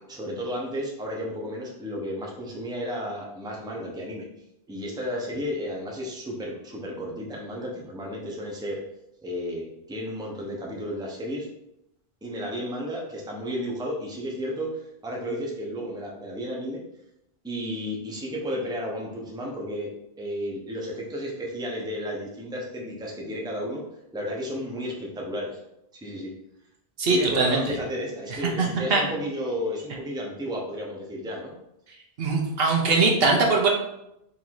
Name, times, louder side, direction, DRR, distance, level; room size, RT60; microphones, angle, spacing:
voice 1, 0.1-4.3 4.7-8.8 9.2-11.5 12.2-16.8 17.4-19.9 20.2-23.8 24.1-25.6 25.9-26.3 27.1-31.5, equal, 5° right, -2 dB, 0.7 m, -33 dB
voice 2, 27.0-27.7 28.6-29.0 32.2-33.7, right 3 dB, 70° right, 1 dB, 1.0 m, -21 dB
3.9 x 2.7 x 4.6 m, 0.84 s
omnidirectional pair, 1.0 m